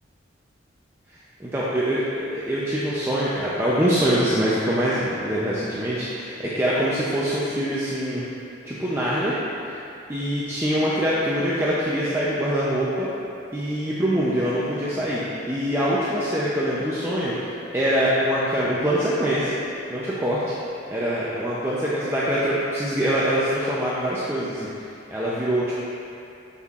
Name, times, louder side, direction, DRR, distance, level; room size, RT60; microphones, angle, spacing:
voice 1, 1.1-8.3 8.6-9.4 9.6-9.8 10.1-13.1 13.5-19.6 19.9-20.5 20.9-25.8, equal, 15° right, -8 dB, 0.5 m, -24 dB
7.9 x 5.6 x 2.4 m, 2.6 s
head